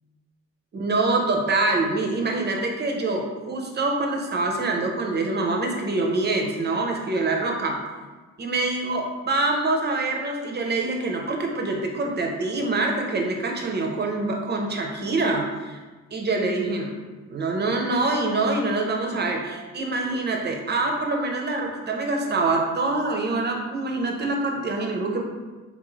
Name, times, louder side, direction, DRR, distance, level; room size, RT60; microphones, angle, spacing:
voice 1, 0.7-7.8 8.4-15.8 16.1-16.9 17.3-25.2, right 2 dB, 35° right, 1 dB, 0.6 m, -25 dB
3.6 x 2.5 x 3.1 m, 1.3 s
cardioid pair, 90°, 30 cm